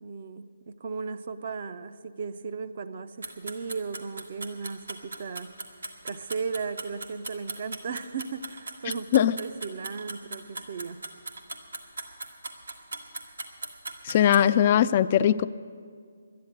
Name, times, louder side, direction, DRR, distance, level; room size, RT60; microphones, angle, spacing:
voice 1, 0.0-5.5 6.0-11.0, right 5 dB, 50° right, 10 dB, 0.6 m, -36 dB
sound 1, 3.2-14.4, right 3 dB, 85° right, 1.6 m, -38 dB
voice 2, 14.0-15.5, left 10 dB, 35° left, 13 dB, 0.3 m, -20 dB
11.5 x 10.5 x 9.3 m, 2.1 s
figure-of-eight pair, 150°, 0 cm